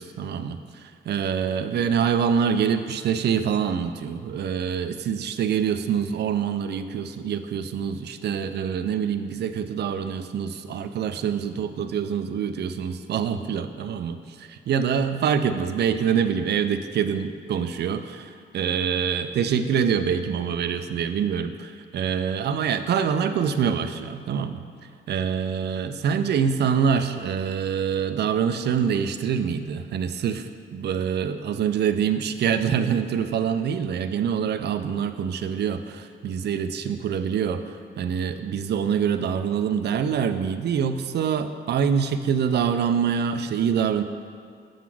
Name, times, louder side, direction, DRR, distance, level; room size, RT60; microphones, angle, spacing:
voice 1, 0.0-24.6 25.1-37.6 38.0-44.0, right 7 dB, 60° right, 9 dB, 0.5 m, -25 dB
7.2 x 3.9 x 6.0 m, 2.2 s
cardioid pair, 90°, 20 cm